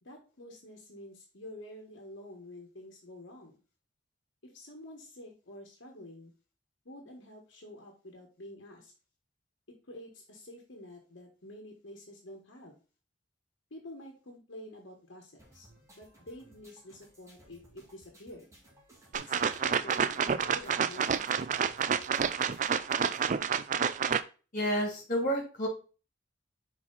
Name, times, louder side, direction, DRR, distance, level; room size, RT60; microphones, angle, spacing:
voice 1, 0.0-3.6 4.4-6.3 6.8-8.9 9.9-12.8 13.7-15.7 15.9-18.5 19.1-21.5, left 1 dB, 75° left, 1 dB, 1.4 m, -49 dB
sound 1, 15.4-23.4, right 1 dB, 15° right, 2.2 m, -60 dB
sound 2, 19.1-24.2, right 7 dB, 40° right, 0.3 m, -29 dB
voice 2, 24.5-25.7, equal, 45° left, 1 dB, 2.5 m, -30 dB
5.6 x 4.7 x 4.1 m, 0.35 s
head